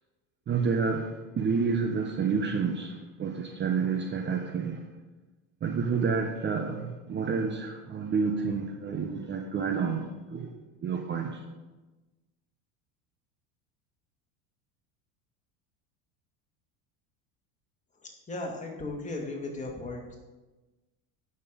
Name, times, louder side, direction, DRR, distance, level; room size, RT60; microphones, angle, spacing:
voice 1, 0.5-4.9 5.6-10.5 10.8-11.4, right 5 dB, 30° right, 4 dB, 1.0 m, -29 dB
voice 2, 18.0-20.2, left 2 dB, 20° left, 0 dB, 2.3 m, -36 dB
9.0 x 6.7 x 5.2 m, 1.1 s
supercardioid pair, 110°, 38 cm